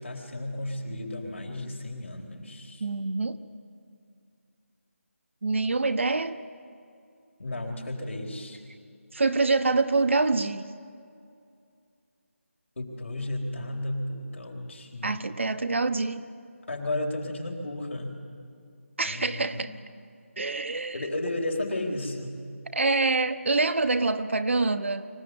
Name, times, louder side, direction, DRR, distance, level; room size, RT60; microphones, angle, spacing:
voice 1, 0.0-2.8 7.4-8.6 12.8-15.2 16.7-18.2 19.0-19.6 20.9-22.4, left 1 dB, 65° left, 1 dB, 4.2 m, -33 dB
voice 2, 2.8-3.4 5.4-6.4 9.1-10.6 15.0-16.2 19.0-19.7 20.4-21.0 22.7-25.1, right 3 dB, 60° right, 10 dB, 1.2 m, -25 dB
24.5 x 16.5 x 9.7 m, 2.4 s
figure-of-eight pair, 165°, 7 cm